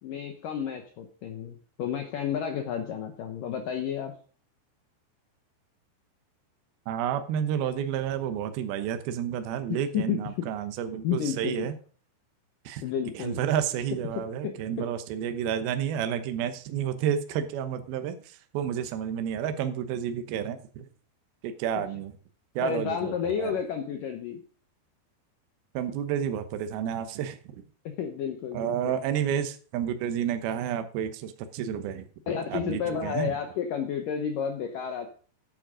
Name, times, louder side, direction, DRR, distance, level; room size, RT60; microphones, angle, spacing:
voice 1, 0.0-4.1 9.7-10.5 11.0-11.7 12.8-13.4 14.2-14.9 22.6-24.4 27.9-29.0 32.3-35.1, left 8 dB, 80° left, 5 dB, 1.9 m, -31 dB
voice 2, 6.9-11.7 12.7-12.8 13.1-20.9 21.4-22.2 22.6-23.6 25.7-27.4 28.5-32.1 32.5-33.3, right 9 dB, 70° right, 9 dB, 2.5 m, -30 dB
10.0 x 8.9 x 5.0 m, 0.42 s
omnidirectional pair, 5.3 m